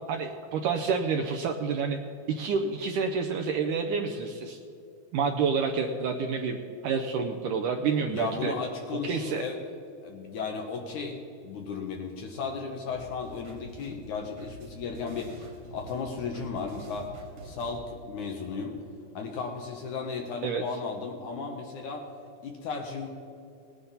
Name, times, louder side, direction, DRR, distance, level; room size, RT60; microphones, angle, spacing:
voice 1, 0.1-2.0 2.3-4.6 5.1-6.6 6.8-8.5 9.0-9.5 20.4-20.6, right 5 dB, 85° right, 3 dB, 1.8 m, -28 dB
voice 2, 8.0-9.6 10.0-17.1 17.4-18.8 19.1-22.1 22.4-23.1, left 5 dB, 70° left, 2 dB, 2.0 m, -35 dB
sound 1, 12.9-17.7, equal, 65° right, 4.1 m, -47 dB
19.0 x 10.0 x 4.1 m, 2.7 s
omnidirectional pair, 4.4 m